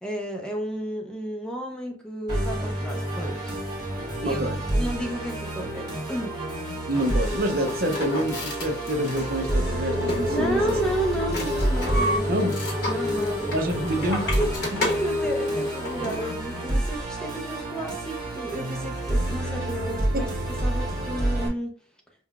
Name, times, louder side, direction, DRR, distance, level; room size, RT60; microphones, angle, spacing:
voice 1, 0.0-3.5 4.2-4.4 4.7-6.3 10.3-12.5 12.8-13.5 14.1-14.5 14.8-20.3 20.6-21.7, right 1 dB, 5° left, 1 dB, 0.6 m, -32 dB
Musical instrument, 2.3-21.5, right 1 dB, 25° right, 1.4 m, -29 dB
voice 2, 4.2-4.6 6.9-10.7 12.3-12.6 13.5-14.3 14.7-14.8, right 1 dB, 50° right, 4 dB, 0.6 m, -27 dB
sound 1, 6.9-16.4, left 2 dB, 65° left, 1.1 m, -30 dB
5.5 x 2.3 x 2.3 m, 0.41 s
head